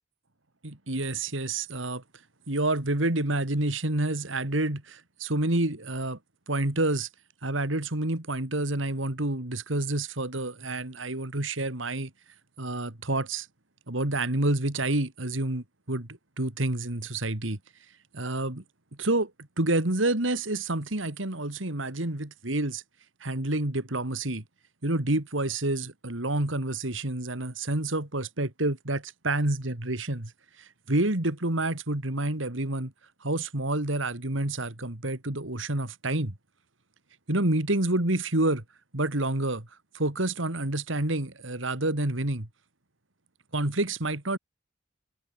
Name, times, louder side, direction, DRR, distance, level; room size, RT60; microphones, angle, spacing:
voice 1, 0.6-2.0 2.5-6.2 6.5-7.1 7.4-12.1 12.6-13.5 13.9-17.6 18.1-18.6 19.0-19.3 19.6-22.8 23.2-24.4 24.8-30.3 30.6-32.9 33.2-36.3 37.3-38.6 38.9-39.7 39.9-42.5 43.5-44.4, right 2 dB, 80° right, 2.8 m, -28 dB
head